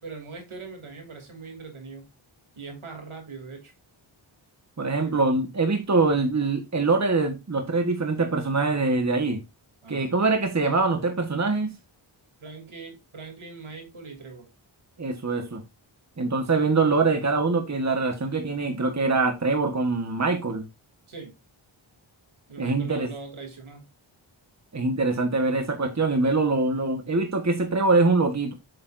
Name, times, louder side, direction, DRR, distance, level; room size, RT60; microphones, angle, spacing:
voice 1, 0.0-2.1 2.5-3.7 5.0-5.2 9.8-10.1 12.4-14.5 21.1-21.3 22.5-23.8, right 4 dB, 75° right, 3.2 m, -41 dB
voice 2, 4.8-9.4 9.9-11.7 15.0-15.6 16.2-20.6 22.6-23.1 24.7-28.5, right 3 dB, 35° right, 1.5 m, -24 dB
7.8 x 7.0 x 2.6 m
wide cardioid pair, 65°, 49 cm